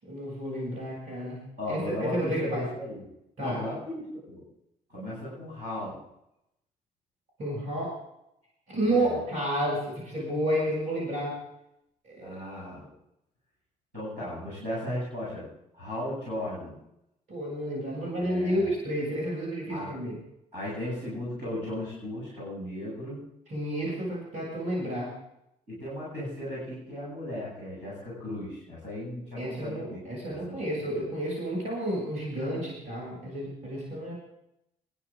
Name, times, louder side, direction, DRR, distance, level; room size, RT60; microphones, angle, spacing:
voice 1, 0.0-1.4 1.7-2.7 3.4-3.6 7.4-7.9 8.7-11.4 12.1-12.4 17.3-20.2 23.5-25.1 29.4-34.1, right 1 dB, 65° right, -5 dB, 7.5 m, -31 dB
voice 2, 1.6-3.1 3.4-4.4 4.9-6.0 8.8-9.2 12.2-12.9 13.9-15.5 15.7-16.8 18.2-18.7 19.7-19.9 20.5-23.2 25.7-31.0, left 1 dB, 90° right, -7 dB, 7.9 m, -36 dB
25.5 x 10.5 x 3.8 m, 0.81 s
figure-of-eight pair, 40°, 20 cm